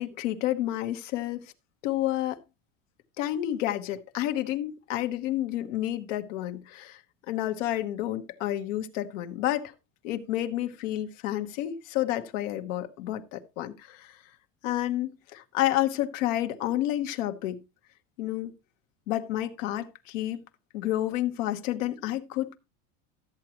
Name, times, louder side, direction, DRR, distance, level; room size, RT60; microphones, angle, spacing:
voice 1, 0.0-1.5 1.8-2.4 3.2-7.0 7.3-9.7 10.0-14.2 14.6-17.6 18.2-18.5 19.1-20.4 20.7-22.6, left 13 dB, 85° left, 1.3 m, -30 dB
13.0 x 7.8 x 2.9 m
supercardioid pair, 120°, 37 cm